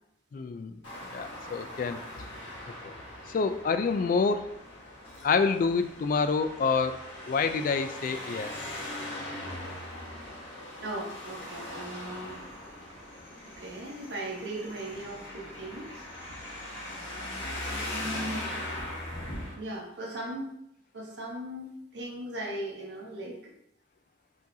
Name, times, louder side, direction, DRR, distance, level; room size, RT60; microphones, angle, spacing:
voice 1, 0.3-0.8 1.1-2.0 3.3-4.5 5.2-8.5, left 4 dB, 45° left, 9 dB, 0.3 m, -27 dB
Traffic noise roadway noise, 0.8-19.5, left 1 dB, 90° left, 1.5 m, -40 dB
voice 2, 10.8-12.4 13.4-16.1 17.8-18.7 19.6-20.5 20.9-23.5, right 1 dB, 75° right, -1 dB, 1.2 m, -38 dB
4.9 x 3.9 x 2.7 m, 0.79 s
head